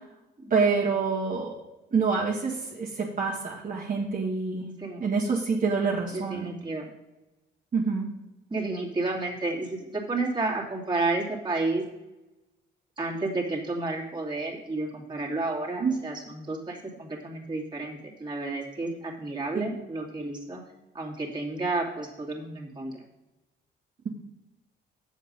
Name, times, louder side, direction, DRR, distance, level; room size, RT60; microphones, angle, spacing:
voice 1, 0.5-1.5 1.9-4.7 5.0-6.5 7.7-8.1 15.8-16.0, right 4 dB, 45° right, -4 dB, 1.8 m, -26 dB
voice 2, 6.1-6.8 8.5-11.8 13.0-20.6 20.9-23.0, right 2 dB, 20° right, -3 dB, 2.5 m, -31 dB
7.7 x 7.2 x 5.3 m, 1.0 s
cardioid pair, 90°, 20 cm